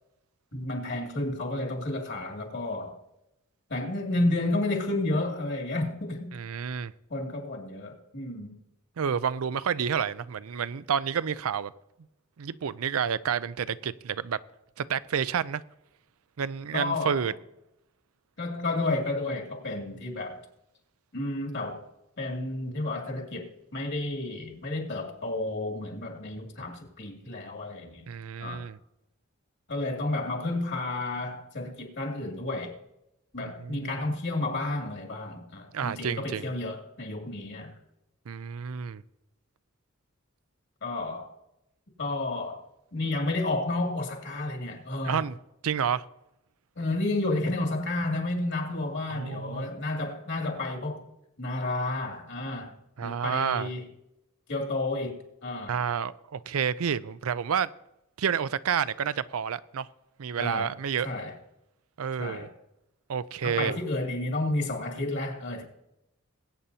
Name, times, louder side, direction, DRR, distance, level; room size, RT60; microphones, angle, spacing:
voice 1, 0.5-2.9 3.7-6.3 7.1-8.5 16.7-17.3 18.4-20.4 21.1-21.8 22.2-28.1 28.4-28.7 29.7-32.7 33.3-37.7 40.8-41.3 42.0-42.6 42.9-45.2 46.8-51.1 51.4-53.8 54.5-55.8 60.4-60.7 61.0-61.3 62.2-62.5 63.4-65.6, left 2 dB, 55° left, 2.5 m, -31 dB
voice 2, 6.3-6.9 9.0-11.7 12.4-14.4 14.8-15.6 16.4-17.3 28.1-28.8 33.4-34.0 35.7-36.5 38.3-39.0 45.0-45.4 45.6-46.0 49.1-49.7 53.0-53.7 55.7-57.7 58.2-59.9 60.2-61.1 62.0-62.5 63.1-63.8, right 7 dB, 80° right, 0.5 m, -29 dB
21.0 x 8.9 x 2.8 m
head